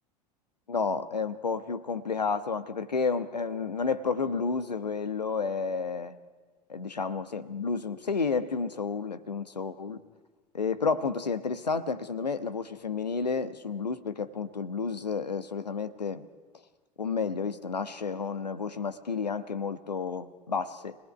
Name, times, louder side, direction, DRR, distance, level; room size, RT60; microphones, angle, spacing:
voice 1, 0.7-6.2 6.7-10.0 10.5-16.3 17.0-21.0, left 5 dB, 80° left, 11 dB, 1.2 m, -31 dB
26.0 x 18.5 x 9.2 m, 1.4 s
figure-of-eight pair, 80°, 21 cm